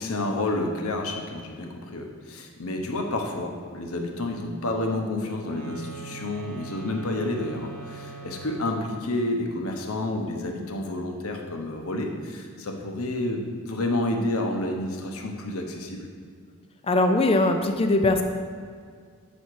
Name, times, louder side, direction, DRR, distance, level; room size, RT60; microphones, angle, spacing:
voice 1, 0.0-16.1, left 2 dB, 75° left, 3 dB, 0.8 m, -30 dB
sound 1, 5.4-9.0, right 5 dB, 90° right, 1.1 m, -42 dB
voice 2, 16.8-18.2, left 2 dB, 25° left, 6 dB, 0.4 m, -21 dB
7.8 x 4.2 x 4.7 m, 2.1 s
head